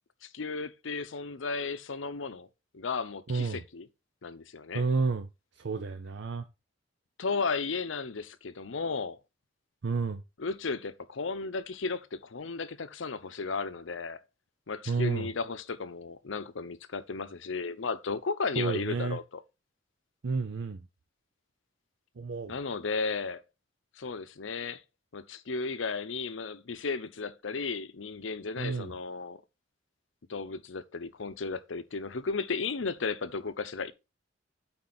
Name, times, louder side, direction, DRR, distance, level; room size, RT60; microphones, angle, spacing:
voice 1, 0.2-2.5 2.7-3.9 4.2-4.9 7.2-9.2 10.4-14.2 14.7-19.4 22.5-23.4 24.0-24.8 25.1-29.4 30.3-33.9, left 4 dB, 80° left, 0.7 m, -34 dB
voice 2, 3.3-3.6 4.7-5.3 5.6-6.5 9.8-10.2 14.9-15.3 18.6-19.2 20.2-20.8 22.2-22.5 28.6-28.9, right 4 dB, 65° right, 0.6 m, -30 dB
8.7 x 4.1 x 4.0 m
head